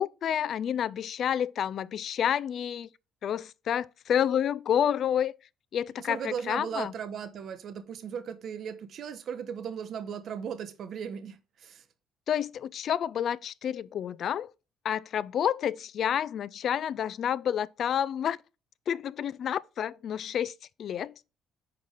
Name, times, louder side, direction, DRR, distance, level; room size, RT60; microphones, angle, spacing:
voice 1, 0.0-2.9 3.2-5.3 5.7-6.9 12.3-14.5 14.8-18.4 18.9-20.5 20.8-21.1, left 9 dB, 60° left, 0.3 m, -29 dB
voice 2, 6.1-11.8, right 7 dB, 60° right, 0.8 m, -37 dB
5.7 x 4.8 x 3.6 m
hypercardioid pair, 60°, 0 cm